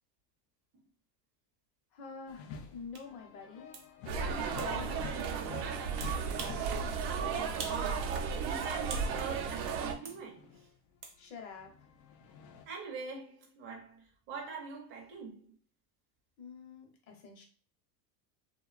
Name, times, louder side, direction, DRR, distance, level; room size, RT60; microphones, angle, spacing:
voice 1, 1.9-3.8 4.1-6.3 11.2-11.9 16.4-17.4, left 5 dB, 40° left, 0.7 m, -48 dB
sound 1, 2.3-11.0 11.4-12.7, left 6 dB, 80° left, 0.6 m, -50 dB
sound 2, 2.9-3.1 3.7-3.9 4.6-4.7 6.0-6.6 7.0-7.1 7.6-7.9 8.2-9.1 10.1-10.2 11.0-11.2, right 5 dB, 55° right, 0.8 m, -44 dB
sound 3, 4.1-9.9, right 6 dB, 85° right, 0.6 m, -34 dB
voice 2, 7.1-10.7 12.7-15.5, right 5 dB, 25° right, 0.5 m, -43 dB
2.7 x 2.2 x 2.3 m
supercardioid pair, 150°, 50 cm